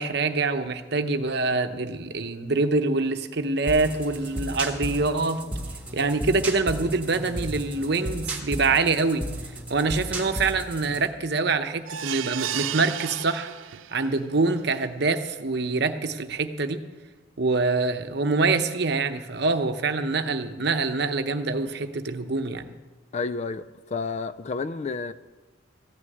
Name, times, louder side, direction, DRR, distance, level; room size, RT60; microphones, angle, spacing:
voice 1, 0.0-5.5 5.9-9.2 9.7-13.5 13.9-16.8 17.4-22.7, right 3 dB, 55° right, 8 dB, 0.8 m, -25 dB
sound 1, 3.7-11.1, right 1 dB, 5° right, 1.7 m, -34 dB
sound 2, 11.9-14.1 14.6-14.7 15.0-15.1, right 11 dB, 75° right, 0.4 m, -33 dB
voice 2, 23.1-25.1, left 4 dB, 35° left, 14 dB, 0.4 m, -30 dB
15.0 x 6.3 x 9.4 m, 1.3 s
head